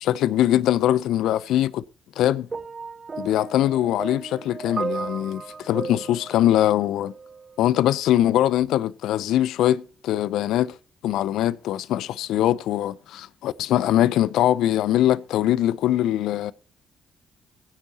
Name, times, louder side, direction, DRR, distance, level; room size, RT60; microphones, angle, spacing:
voice 1, 0.0-1.8 2.2-2.5 3.2-7.1 7.6-10.8 11.0-16.5, left 12 dB, 75° left, 0.5 m, -22 dB
sound 1, 2.5-7.6 8.5-8.7, right 4 dB, 40° right, 1.2 m, -35 dB
20.5 x 9.8 x 2.9 m
hypercardioid pair, 45°, 0 cm